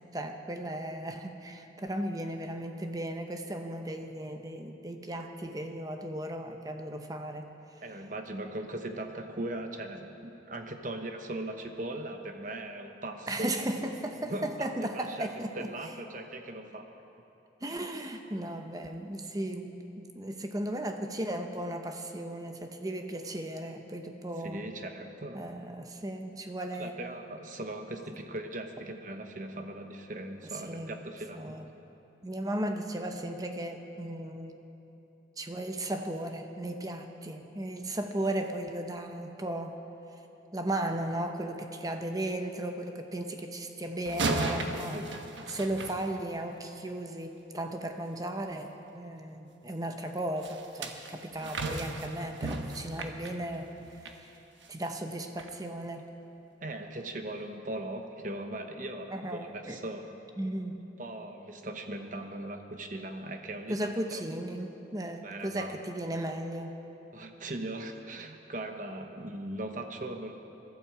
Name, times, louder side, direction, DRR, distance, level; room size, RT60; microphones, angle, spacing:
voice 1, 0.1-7.5 13.3-15.7 17.6-24.6 25.3-27.0 30.5-30.9 31.4-31.7 32.2-34.6 35.4-39.8 40.5-45.2 45.5-53.7 54.0-54.3 54.7-56.1 59.1-59.8 60.4-60.9 63.7-66.8, right 1 dB, 20° right, 5 dB, 0.8 m, -36 dB
voice 2, 7.8-13.5 14.3-14.7 14.9-15.3 15.6-16.9 24.4-25.4 26.8-31.6 44.9-45.1 56.6-60.0 60.4-60.5 61.0-64.2 65.2-65.7 67.1-70.3, right 1 dB, 45° right, 5 dB, 1.0 m, -39 dB
sound 1, 44.1-46.6 50.4-54.2 54.6-54.8 55.4-55.5, right 2 dB, 80° right, 1.2 m, -35 dB
22.0 x 12.5 x 4.9 m, 2.9 s
head